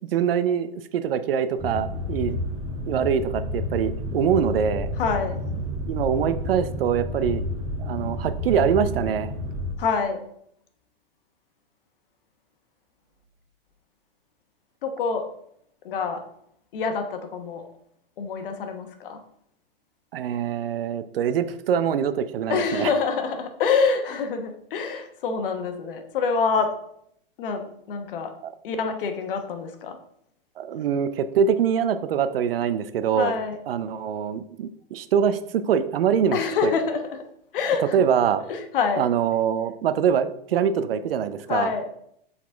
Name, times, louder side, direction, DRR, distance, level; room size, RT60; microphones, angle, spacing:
voice 1, 0.1-2.4 2.9-4.9 5.8-7.4 7.8-9.3 20.1-22.9 28.4-28.5 30.6-33.3 33.7-36.7 37.8-38.4 39.0-41.7, right 8 dB, 75° right, 12 dB, 0.6 m, -24 dB
sound 1, 1.6-9.8, left 1 dB, 20° right, 1.4 m, -30 dB
voice 2, 5.0-5.4 9.8-10.2 14.8-15.3 15.8-16.2 16.7-17.6 18.2-19.2 22.5-26.7 27.4-28.3 28.6-30.0 33.1-33.6 36.3-37.3 37.5-38.0 38.5-39.1 41.5-41.9, left 5 dB, 65° left, 6 dB, 1.1 m, -26 dB
7.3 x 4.1 x 3.4 m, 0.71 s
hypercardioid pair, 120°, 29 cm